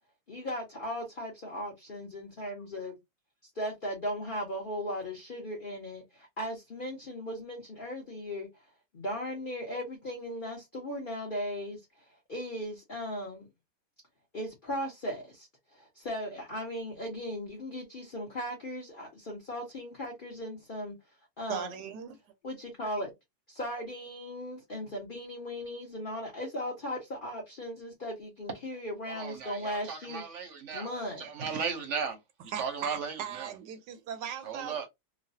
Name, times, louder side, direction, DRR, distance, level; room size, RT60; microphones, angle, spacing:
voice 1, 0.3-2.9 3.6-8.5 8.9-11.9 12.3-13.5 14.3-21.0 21.4-21.8 22.4-23.1 23.5-30.2 30.7-31.3, equal, 45° left, 0.7 m, -37 dB
voice 2, 21.5-22.2 32.5-34.9, right 9 dB, 75° right, 1.1 m, -38 dB
voice 3, 29.1-30.9 31.2-33.5 34.4-34.9, right 5 dB, 55° right, 0.9 m, -36 dB
3.1 x 2.2 x 2.6 m
omnidirectional pair, 2.0 m